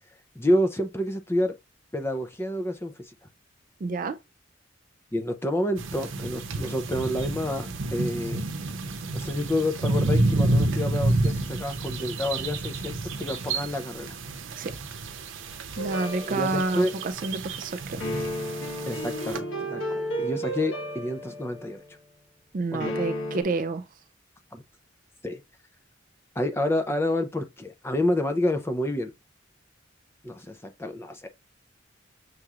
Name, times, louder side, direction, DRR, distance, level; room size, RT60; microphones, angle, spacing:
voice 1, 0.4-1.5 1.9-2.9 5.1-8.4 9.1-14.2 16.2-16.9 18.9-21.8 22.7-23.0 24.5-24.6 25.2-25.4 26.4-29.1 30.2-31.3, left 1 dB, 15° left, 0.5 m, -28 dB
voice 2, 3.8-4.2 14.5-14.8 15.8-18.0 22.5-23.8, right 3 dB, 45° right, 0.4 m, -29 dB
sound 1, 5.8-19.4, right 2 dB, 85° right, 0.7 m, -29 dB
sound 2, 15.8-17.1 18.0-21.9 22.8-23.4, equal, 85° left, 1.2 m, -33 dB
6.6 x 3.0 x 2.4 m
head